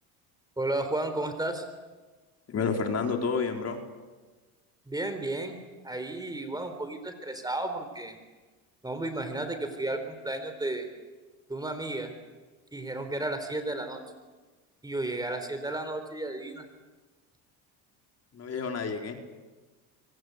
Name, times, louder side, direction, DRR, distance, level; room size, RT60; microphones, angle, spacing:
voice 1, 0.6-1.7 4.9-5.6 5.8-8.1 8.8-10.9 11.5-12.1 12.7-14.0 14.8-16.7, right 2 dB, 10° right, 8 dB, 3.7 m, -33 dB
voice 2, 2.5-3.8 18.3-19.2, left 5 dB, 35° left, 3 dB, 4.5 m, -30 dB
27.0 x 24.0 x 8.3 m, 1.3 s
supercardioid pair, 110°, 42 cm